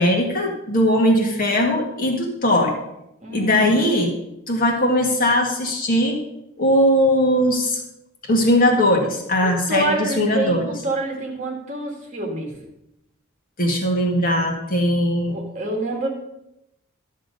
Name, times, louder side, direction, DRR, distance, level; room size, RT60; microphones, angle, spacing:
voice 1, 0.0-2.7 3.3-4.1 4.5-6.2 6.6-7.8 8.3-10.7 13.6-15.4, left 1 dB, 45° left, 1 dB, 1.8 m, -19 dB
voice 2, 3.2-3.9 9.4-12.5 15.3-16.1, right 1 dB, 35° right, 1 dB, 2.1 m, -27 dB
12.0 x 6.4 x 5.3 m, 0.86 s
head